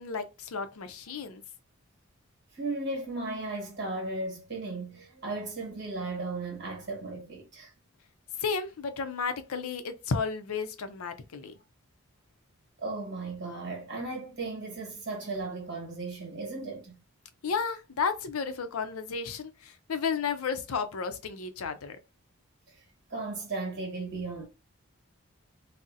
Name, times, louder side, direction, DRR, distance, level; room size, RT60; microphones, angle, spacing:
voice 1, 0.0-1.4 8.4-11.5 17.4-22.0, left 5 dB, 85° left, 0.5 m, -33 dB
voice 2, 2.5-7.7 12.8-17.0 23.1-24.4, right 3 dB, 50° right, 1.2 m, -36 dB
3.9 x 2.0 x 2.5 m
head